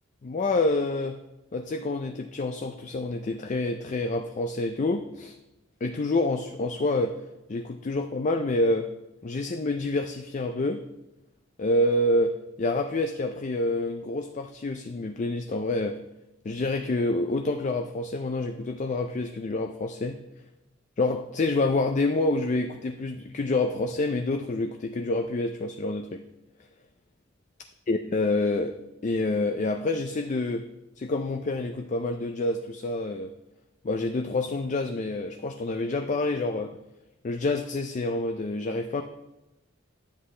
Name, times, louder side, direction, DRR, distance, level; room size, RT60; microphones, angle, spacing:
voice 1, 0.2-1.2 1.5-5.3 5.8-7.2 7.5-8.9 9.2-10.8 11.6-16.0 16.5-20.2 21.0-26.2 27.9-28.7 29.0-30.7 31.0-33.3 33.8-36.7 37.2-39.0, left 2 dB, 40° left, 5 dB, 0.4 m, -27 dB
10.5 x 7.6 x 3.2 m, 0.97 s
head